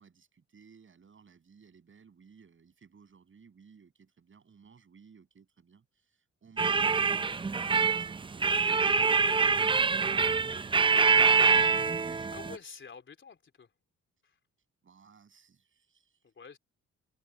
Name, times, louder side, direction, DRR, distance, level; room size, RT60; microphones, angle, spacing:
voice 1, 0.0-10.9 11.5-12.3 14.8-16.2, right 6 dB, 40° right, 7.2 m, -58 dB
sound 1, 6.6-12.5, right 5 dB, 15° right, 0.5 m, -25 dB
voice 2, 12.3-13.7 14.2-14.4 16.2-16.6, left 5 dB, 40° left, 3.7 m, -48 dB
cardioid pair, 90°, 30 cm